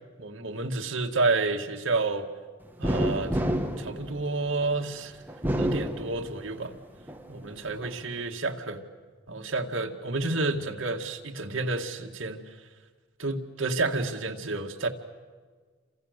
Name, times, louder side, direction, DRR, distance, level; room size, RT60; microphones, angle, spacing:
voice 1, 0.2-2.3 2.8-5.2 5.6-6.8 7.3-8.8 9.3-12.6 13.2-14.9, right 3 dB, 80° right, 3 dB, 2.2 m, -30 dB
sound 1, 2.8-4.7 5.3-6.6 7.1-8.0, equal, 10° right, 1.7 m, -29 dB
29.0 x 27.0 x 6.7 m, 1.5 s
head